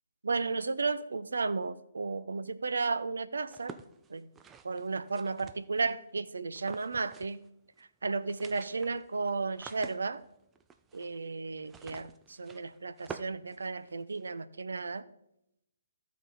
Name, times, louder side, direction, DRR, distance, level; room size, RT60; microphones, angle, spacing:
voice 1, 0.2-3.8 4.1-4.3 4.6-7.4 7.8-10.2 10.9-15.0, right 4 dB, 65° right, 13 dB, 0.6 m, -34 dB
sound 1, 3.4-6.0 6.6-7.5 7.7-7.8 8.1-14.3, right 6 dB, 15° right, 0.4 m, -49 dB
14.0 x 4.7 x 4.1 m, 0.80 s
figure-of-eight pair, 130°, 0 cm